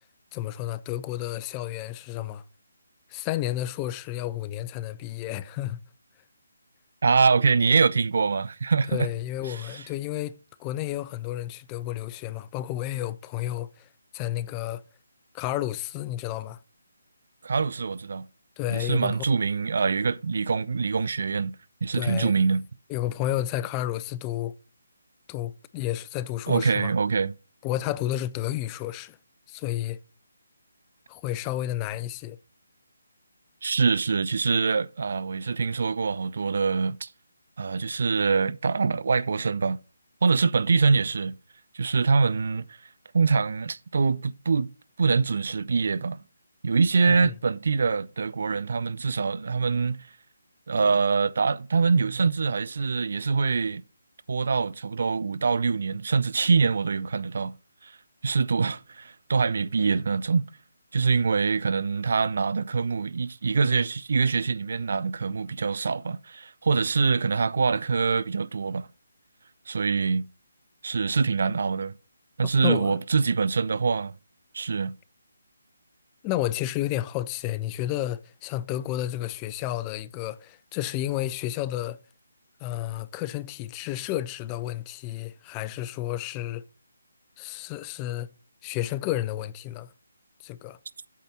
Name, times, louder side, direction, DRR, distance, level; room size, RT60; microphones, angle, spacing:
voice 1, 0.3-2.4 3.1-5.8 8.9-13.9 14.1-14.8 15.3-16.6 18.6-19.2 21.9-22.4 22.9-24.5 25.3-26.9 27.6-29.2 29.5-30.0 31.1-32.4 47.1-47.3 72.4-73.0 76.2-82.0 82.6-86.6 87.4-88.3 88.6-89.9 90.4-90.8, left 14 dB, 20° left, 0.4 m, -31 dB
voice 2, 7.0-9.1 9.5-9.6 17.4-18.3 18.7-21.5 21.8-22.6 26.5-27.3 33.6-37.1 37.6-39.8 40.2-41.4 41.7-42.7 43.1-44.7 45.0-46.2 46.6-50.1 50.7-53.8 54.3-57.5 57.8-57.9 58.2-60.5 60.9-68.9 69.7-70.3 70.8-71.9 72.4-74.1 74.5-75.0, right 4 dB, 60° right, 0.4 m, -24 dB
8.4 x 4.1 x 5.9 m
figure-of-eight pair, 155°, 0 cm